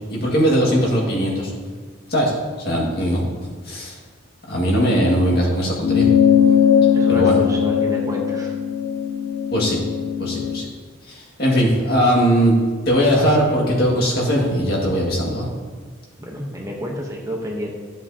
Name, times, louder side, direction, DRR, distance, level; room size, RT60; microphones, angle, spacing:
voice 1, 0.1-1.5 2.1-2.3 2.6-3.2 3.7-4.0 4.5-6.1 7.1-7.4 9.5-9.8 10.2-10.7 11.1-12.5 12.9-15.5, equal, 50° left, -3 dB, 2.0 m, -19 dB
sound 1, 5.8-10.6, left 8 dB, 70° left, 0.4 m, -18 dB
voice 2, 6.9-8.5 16.2-17.7, equal, 15° right, -1 dB, 0.9 m, -29 dB
14.0 x 7.3 x 2.9 m, 1.5 s
head